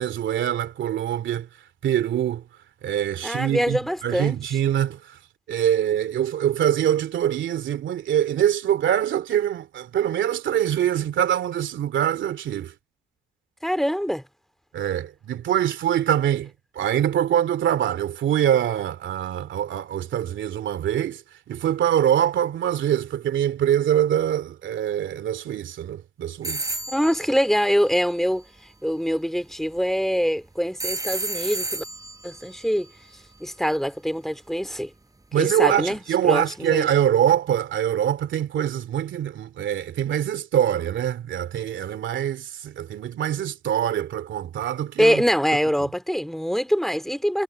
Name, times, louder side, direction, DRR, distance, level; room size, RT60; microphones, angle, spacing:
voice 1, 0.0-1.5 1.8-2.4 2.8-5.2 5.5-12.7 14.7-21.2 21.5-26.7 35.3-45.2 45.8-45.9, right 10 dB, 70° right, 2.7 m, -24 dB
voice 2, 3.2-4.4 13.6-14.2 26.9-28.4 28.8-31.8 32.2-32.9 33.4-34.9 35.4-36.9 45.0-47.4, equal, ahead, 2.5 m, -24 dB
sound 1, 26.4-28.5 30.8-33.8, right 2 dB, 15° right, 5.8 m, -33 dB
cardioid pair, 90°, 20 cm